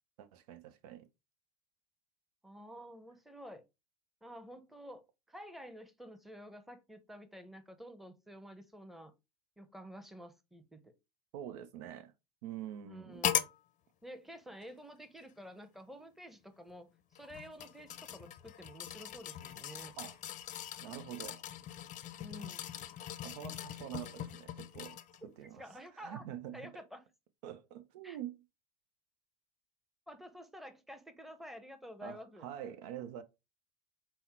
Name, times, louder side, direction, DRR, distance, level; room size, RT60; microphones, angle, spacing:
voice 1, 0.2-1.1 11.3-12.1 12.4-13.2 20.0-20.2 20.8-21.5 23.2-26.8 27.4-28.4 32.0-33.2, right 11 dB, 75° right, 0.7 m, -46 dB
voice 2, 2.4-3.6 4.2-5.0 5.3-9.1 9.6-10.9 12.8-13.5 14.0-20.0 22.2-22.6 25.2-25.3 25.6-26.3 26.5-27.1 28.0-28.2 30.1-32.5, equal, ahead, 0.8 m, -50 dB
sound 1, 13.2-13.6 14.6-14.7 17.1-25.2 25.7-25.8, left 11 dB, 40° left, 0.6 m, -40 dB
5.6 x 2.1 x 4.3 m
hypercardioid pair, 90°, 20 cm